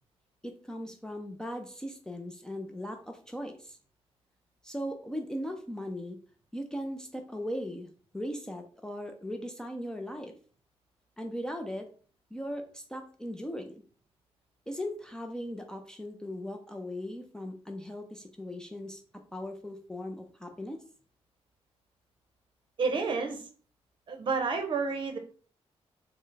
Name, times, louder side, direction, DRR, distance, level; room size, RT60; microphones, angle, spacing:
voice 1, 0.4-3.8 4.6-6.2 6.5-7.9 8.1-10.3 11.2-11.9 12.3-13.8 14.7-19.0 19.3-20.8, equal, 5° left, 3 dB, 0.4 m, -38 dB
voice 2, 22.8-23.5 24.1-25.2, right 4 dB, 50° right, 5 dB, 0.7 m, -30 dB
4.2 x 2.0 x 3.2 m, 0.41 s
wide cardioid pair, 140°, 11 cm